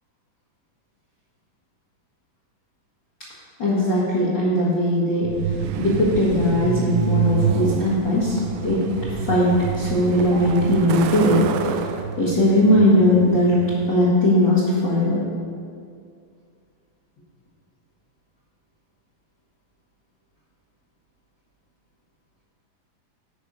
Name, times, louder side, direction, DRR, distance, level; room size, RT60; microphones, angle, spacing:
voice 1, 3.6-5.3 5.8-8.4 8.6-8.9 9.3-11.4 12.2-13.6 13.9-15.2, left 1 dB, 40° left, -9 dB, 1.7 m, -19 dB
Truck, 5.2-14.0, right 6 dB, 85° right, 2.3 m, -27 dB
10.5 x 5.6 x 5.4 m, 2.3 s
omnidirectional pair, 4.1 m